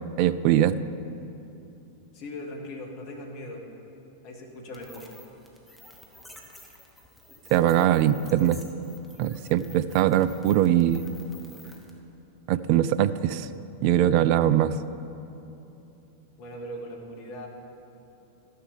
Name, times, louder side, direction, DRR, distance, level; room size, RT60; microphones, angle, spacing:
voice 1, 0.2-0.8 7.5-8.6 9.2-11.0 12.5-13.5 13.8-14.8, right 11 dB, 45° right, 14 dB, 0.3 m, -21 dB
voice 2, 2.1-3.6 4.2-5.1 16.4-17.5, left 1 dB, 45° left, 1 dB, 1.5 m, -39 dB
sound 1, 4.7-12.0, left 1 dB, ahead, 1.2 m, -51 dB
13.0 x 6.6 x 5.1 m, 2.9 s
figure-of-eight pair, 90°, 0 cm